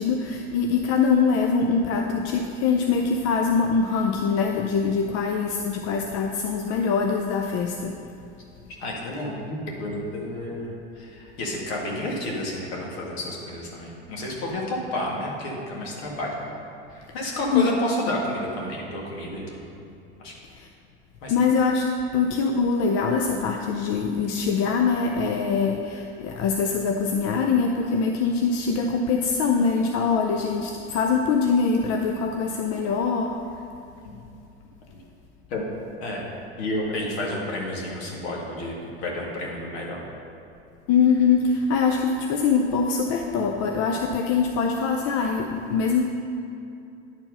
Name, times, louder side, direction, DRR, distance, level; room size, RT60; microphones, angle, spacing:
voice 1, 0.0-8.0 17.5-17.7 20.5-20.7 21.3-33.4 40.9-46.0, left 5 dB, 50° left, 3 dB, 0.6 m, -23 dB
voice 2, 8.7-16.5 16.9-19.6 20.2-20.3 21.2-21.3 34.0-34.3 35.5-35.7 36.0-36.3 36.6-40.0, left 1 dB, 70° left, -2 dB, 2.0 m, -31 dB
10.5 x 4.6 x 5.4 m, 2.6 s
hypercardioid pair, 80°, 32 cm